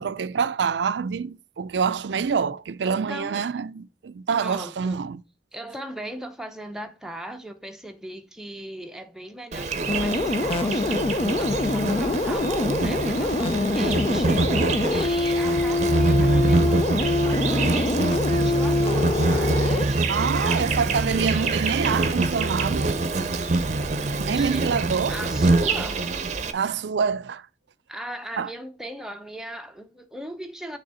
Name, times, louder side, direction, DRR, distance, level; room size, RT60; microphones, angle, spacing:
voice 1, 0.0-5.2 20.1-22.9 24.2-25.2 26.5-27.4 28.4-28.5, right 6 dB, 80° right, 0.4 m, -26 dB
voice 2, 2.8-3.5 4.3-5.0 5.5-14.5 14.8-20.8 24.1-24.7 25.1-26.0 27.9-30.8, right 1 dB, 5° right, 0.7 m, -38 dB
Insect, 9.5-26.5, right 2 dB, 40° right, 0.7 m, -24 dB
sound 1, 9.9-19.9, left 2 dB, 35° left, 0.4 m, -25 dB
6.5 x 3.5 x 5.5 m
head